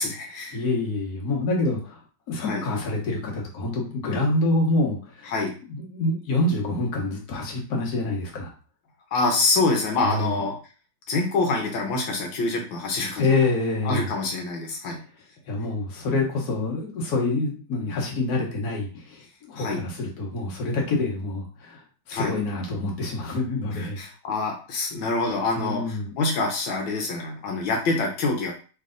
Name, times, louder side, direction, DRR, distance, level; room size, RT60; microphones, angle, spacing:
voice 1, 0.0-0.6 2.5-2.6 5.2-5.5 9.1-10.6 11.1-13.2 13.8-15.0 19.6-19.8 22.1-22.3 23.8-28.5, left 3 dB, 85° left, 1 dB, 1.6 m, -26 dB
voice 2, 0.5-2.0 2.3-5.3 5.7-8.5 10.0-10.4 13.2-14.1 15.5-21.8 22.1-24.0 25.5-26.1, left 2 dB, 55° left, -1 dB, 1.6 m, -26 dB
3.3 x 3.3 x 3.8 m, 0.37 s
omnidirectional pair, 2.0 m